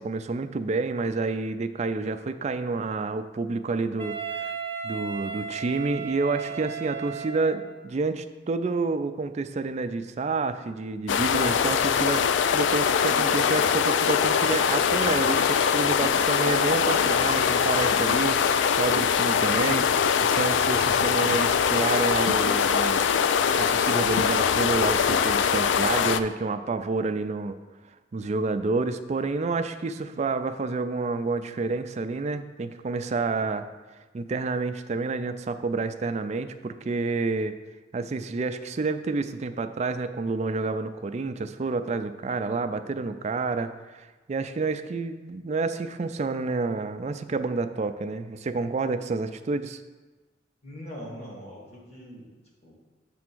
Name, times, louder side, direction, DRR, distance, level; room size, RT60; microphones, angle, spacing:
voice 1, 0.0-4.5 4.8-19.9 20.2-23.0 23.6-27.6 28.1-33.7 34.1-37.6 37.9-49.8, right 3 dB, 40° right, 10 dB, 0.4 m, -29 dB
Wind instrument woodwind instrument, 4.0-7.8, right 6 dB, 10° left, 0.8 m, -35 dB
sound 1, 11.1-26.2, left 7 dB, 85° left, 0.3 m, -22 dB
voice 2, 50.6-52.3 52.6-52.7, equal, 35° left, -4 dB, 1.9 m, -42 dB
7.5 x 3.5 x 6.1 m, 1.2 s
head